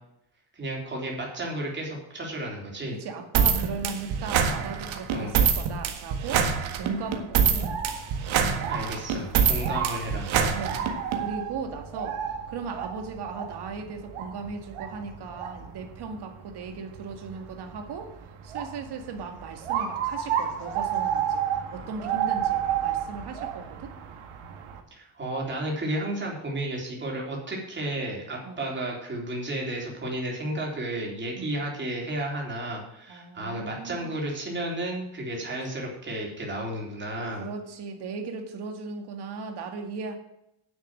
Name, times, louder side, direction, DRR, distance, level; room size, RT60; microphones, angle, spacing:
voice 1, 0.5-2.9 5.1-5.4 8.7-10.6 24.9-37.5, right 1 dB, 20° right, -2 dB, 3.6 m, -33 dB
voice 2, 2.9-7.9 8.3-8.7 9.7-9.9 10.5-10.8 11.1-18.1 18.4-24.0 28.4-28.7 31.4-31.6 33.1-34.1 37.3-40.2, right 4 dB, 50° right, 5 dB, 2.1 m, -37 dB
sound 1, 3.3-11.2, right 7 dB, 70° right, 1.7 m, -25 dB
sound 2, 7.4-24.8, right 9 dB, 85° right, 2.0 m, -32 dB
9.8 x 7.4 x 7.5 m, 0.80 s
cardioid pair, 165°, 49 cm